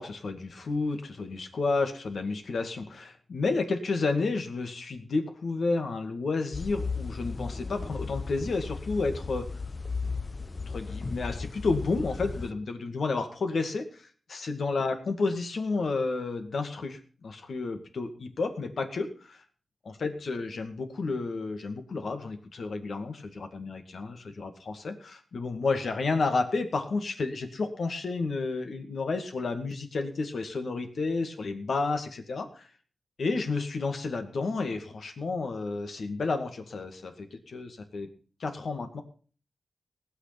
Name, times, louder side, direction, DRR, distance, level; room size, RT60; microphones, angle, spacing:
voice 1, 0.0-9.5 10.7-19.4 19.9-32.7 33.2-38.1 38.4-39.0, left 3 dB, 75° left, 6 dB, 2.1 m, -31 dB
sound 1, 6.5-12.5, left 4 dB, 40° left, 0.7 m, -35 dB
19.0 x 6.7 x 5.9 m, 0.41 s
cardioid pair, 70°, 0 cm